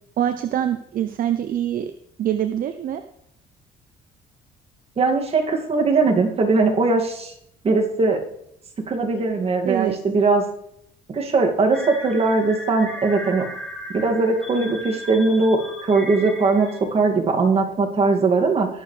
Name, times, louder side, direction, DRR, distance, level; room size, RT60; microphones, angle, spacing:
voice 1, 0.2-1.9 2.2-3.0 9.6-10.0, right 10 dB, 55° right, 9 dB, 0.7 m, -24 dB
voice 2, 5.0-7.3 7.6-8.2 8.9-10.4 11.1-13.5 13.9-18.7, right 3 dB, 35° right, 1 dB, 2.5 m, -20 dB
sound 1, 11.7-16.8, equal, 5° left, 3.6 m, -36 dB
20.0 x 7.0 x 3.4 m, 0.74 s
cardioid pair, 110°, 17 cm